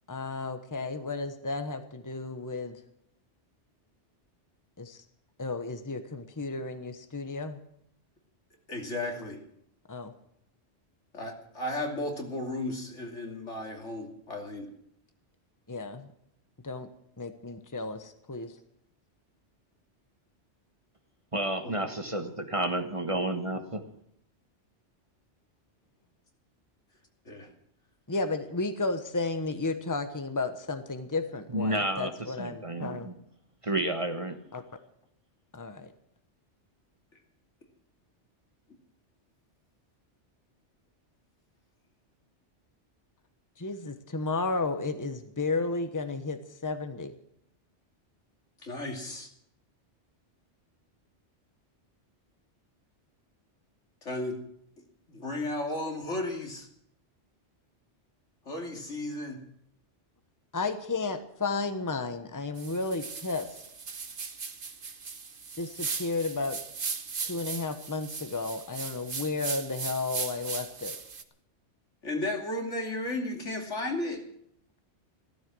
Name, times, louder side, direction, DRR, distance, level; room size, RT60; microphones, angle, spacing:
voice 1, 0.1-2.8 4.8-5.0 5.4-7.6 9.9-10.1 15.7-16.1 16.6-16.9 17.2-18.5 28.1-33.1 34.5-34.6 35.5-35.9 43.6-47.1 60.5-63.5 65.6-66.6 67.2-70.9, left 3 dB, 15° left, 8 dB, 1.2 m, -33 dB
voice 2, 8.7-9.4 11.1-14.7 21.6-21.7 27.2-27.5 32.8-32.9 48.6-49.3 54.0-54.4 55.1-56.7 58.4-59.4 72.0-74.2, left 1 dB, 80° left, 2 dB, 3.2 m, -34 dB
voice 3, 21.3-23.8 31.5-32.1 32.4-33.1 33.6-34.4, right 1 dB, 30° right, 6 dB, 1.3 m, -30 dB
sound 1, 62.6-71.2, right 5 dB, 50° right, 1.3 m, -38 dB
16.0 x 14.0 x 6.3 m, 0.71 s
omnidirectional pair, 1.2 m